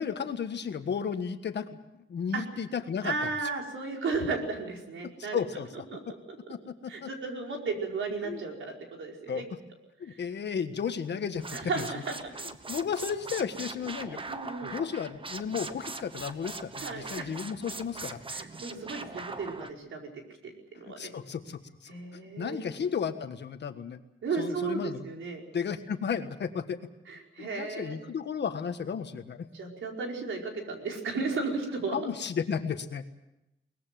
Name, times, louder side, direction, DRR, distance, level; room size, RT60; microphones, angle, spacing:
voice 1, 0.0-3.1 5.3-6.0 6.5-7.1 8.2-8.4 9.3-9.5 10.0-11.8 12.4-14.2 14.6-18.2 21.0-21.9 22.4-24.0 24.4-25.0 25.5-26.8 27.4-29.5 31.9-33.1, left 7 dB, 60° left, 8 dB, 1.5 m, -33 dB
voice 2, 3.0-5.4 5.9-6.0 6.9-9.4 10.1-10.2 11.5-12.3 14.3-14.8 16.8-17.3 18.3-20.1 20.7-21.1 21.9-22.6 24.2-25.4 27.1-28.0 29.5-32.0, right 4 dB, 75° right, 1 dB, 4.9 m, -34 dB
sound 1, 11.4-19.7, right 3 dB, 25° right, 1.1 m, -41 dB
22.5 x 20.5 x 7.6 m, 0.89 s
wide cardioid pair, 145°, 21 cm